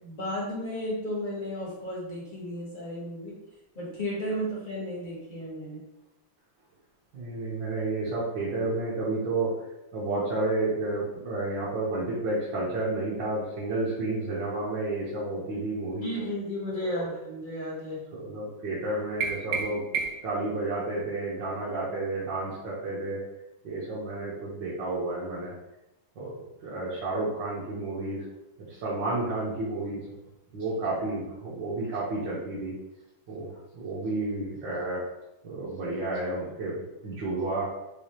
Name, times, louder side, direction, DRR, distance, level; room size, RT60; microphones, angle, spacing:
voice 1, 0.0-3.4 3.7-5.8 16.0-18.0, equal, 45° left, -5 dB, 0.6 m, -34 dB
voice 2, 7.1-9.5 9.9-16.1 16.8-17.0 18.1-19.8 20.2-23.2 23.6-25.5 26.1-28.2 28.7-30.0 30.5-32.7 33.3-33.5 33.7-35.0 35.4-37.7, right 2 dB, 60° right, -8 dB, 1.5 m, -31 dB
sound 1, 19.2-20.4, right 6 dB, 90° right, 1.6 m, -31 dB
4.8 x 2.3 x 2.9 m, 0.91 s
omnidirectional pair, 2.4 m